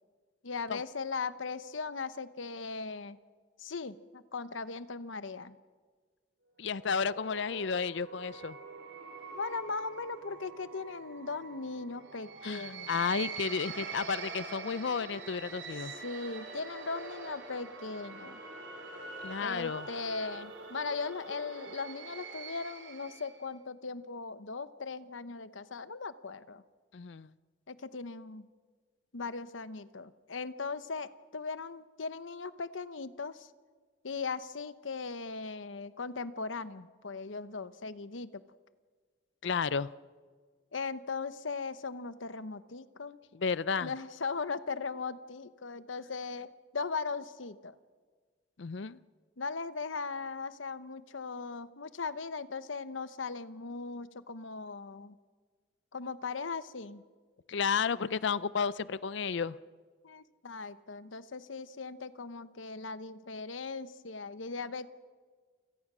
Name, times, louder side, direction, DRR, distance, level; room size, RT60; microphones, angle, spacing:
voice 1, 0.4-3.2 3.6-5.6 9.3-13.0 15.8-18.4 19.4-26.6 27.7-28.5 29.1-33.5 34.0-38.4 40.7-43.2 43.8-46.5 46.7-47.8 49.4-55.2 55.9-57.0 60.0-64.9, left 4 dB, 90° left, 14 dB, 0.9 m, -38 dB
voice 2, 6.6-8.6 12.4-15.9 19.2-19.9 26.9-27.3 39.4-39.9 43.3-43.9 48.6-49.0 57.5-59.6, left 5 dB, 65° left, 18 dB, 0.5 m, -32 dB
sound 1, 6.6-23.5, right 4 dB, 70° right, 3.3 m, -45 dB
28.5 x 17.5 x 6.2 m, 1.5 s
head